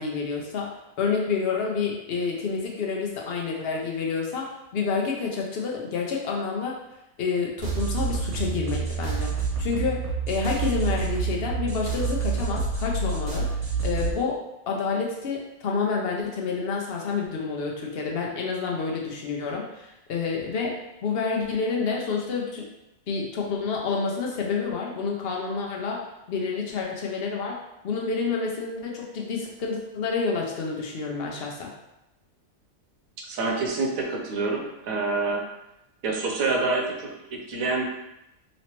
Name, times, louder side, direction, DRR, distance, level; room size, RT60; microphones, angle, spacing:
voice 1, 0.0-6.8 7.2-13.5 13.8-22.7 23.1-31.7, left 5 dB, 55° left, -1 dB, 0.7 m, -29 dB
sound 1, 7.6-14.1, right 5 dB, 60° right, 1.1 m, -28 dB
voice 2, 33.2-35.4 36.0-37.9, right 3 dB, 90° right, 1 dB, 1.1 m, -27 dB
3.1 x 3.0 x 2.9 m, 0.91 s
omnidirectional pair, 1.4 m